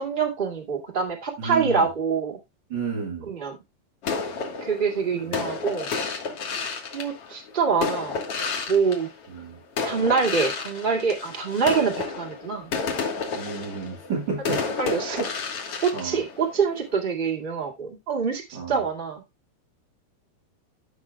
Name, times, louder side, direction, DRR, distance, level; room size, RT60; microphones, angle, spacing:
voice 1, 0.0-2.4 3.3-3.6 4.6-5.9 6.9-8.2 8.7-9.1 9.8-12.7 14.8-15.2 15.8-18.4 18.7-19.2, right 5 dB, 30° right, 0.9 m, -25 dB
voice 2, 1.4-1.9 2.7-3.3 5.2-5.5 9.3-9.6 13.3-14.6 15.9-16.2 18.5-18.9, right 5 dB, 85° right, 1.0 m, -32 dB
sound 1, 4.0-9.4 9.8-16.9, left 4 dB, 60° left, 1.6 m, -31 dB
16.0 x 6.0 x 2.3 m
omnidirectional pair, 4.9 m